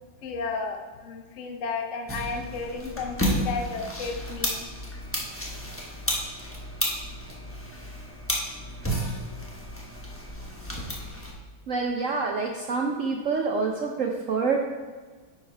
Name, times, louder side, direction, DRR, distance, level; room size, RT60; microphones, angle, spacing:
voice 1, 0.2-4.7, left 4 dB, 60° left, 4 dB, 0.8 m, -33 dB
Seamstress' Steam Iron, 2.1-11.3, equal, 10° left, 0.7 m, -32 dB
voice 2, 11.7-14.6, right 4 dB, 65° right, 2 dB, 0.8 m, -27 dB
9.7 x 4.9 x 4.6 m, 1.4 s
omnidirectional pair, 2.1 m